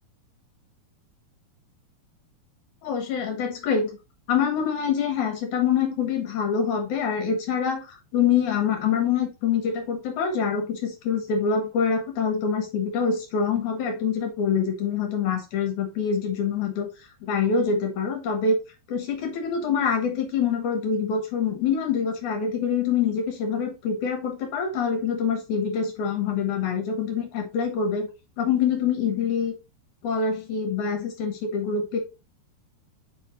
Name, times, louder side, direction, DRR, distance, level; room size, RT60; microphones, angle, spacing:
voice 1, 2.8-4.0 4.3-7.8 8.1-16.9 17.2-18.6 18.9-28.1 28.4-29.5 30.0-32.0, left 6 dB, 60° left, 4 dB, 2.2 m, -25 dB
5.0 x 5.0 x 3.7 m, 0.28 s
omnidirectional pair, 4.8 m